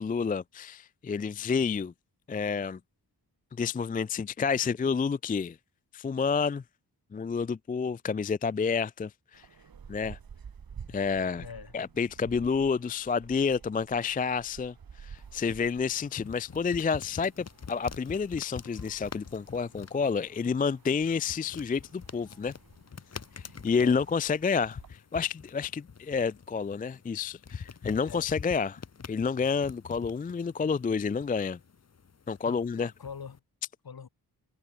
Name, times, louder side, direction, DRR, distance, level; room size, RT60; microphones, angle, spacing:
voice 1, 0.0-1.9 2.3-2.8 3.6-5.6 5.9-6.6 7.1-9.5 9.9-10.2 10.9-11.4 11.7-22.5 23.4-28.8 29.1-31.6 32.3-32.9, left 5 dB, 25° left, 0.3 m, -29 dB
sound 1, 9.3-24.9, right 6 dB, 60° right, 2.7 m, -52 dB
voice 2, 11.4-11.8 23.8-24.0 27.5-27.6 28.0-28.3 32.4-33.4 33.8-34.1, left 6 dB, 65° left, 5.5 m, -44 dB
sound 2, 15.2-33.4, left 5 dB, 40° left, 1.4 m, -46 dB
wide cardioid pair, 135°, 40 cm